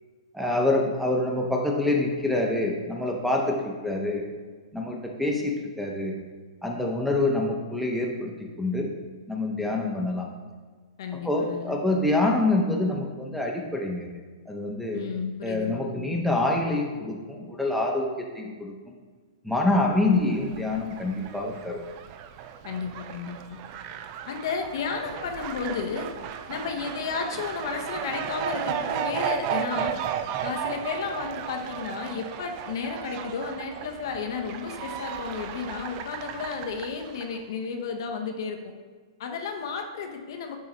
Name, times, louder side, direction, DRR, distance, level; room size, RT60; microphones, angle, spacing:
voice 1, 0.3-4.2 4.7-6.1 6.6-8.9 9.3-10.3 11.2-14.1 14.5-15.0 15.4-18.1 18.3-18.7 19.4-21.8, left 2 dB, ahead, 0 dB, 0.9 m, -26 dB
voice 2, 11.0-11.8 14.9-16.0 22.6-23.6 24.3-26.1 26.5-30.0 30.4-38.6 39.2-40.6, left 5 dB, 60° left, 4 dB, 0.8 m, -33 dB
Fowl, 20.0-37.4, right 9 dB, 40° right, 0.4 m, -35 dB
10.0 x 3.7 x 3.0 m, 1.5 s
hypercardioid pair, 115°, 3 cm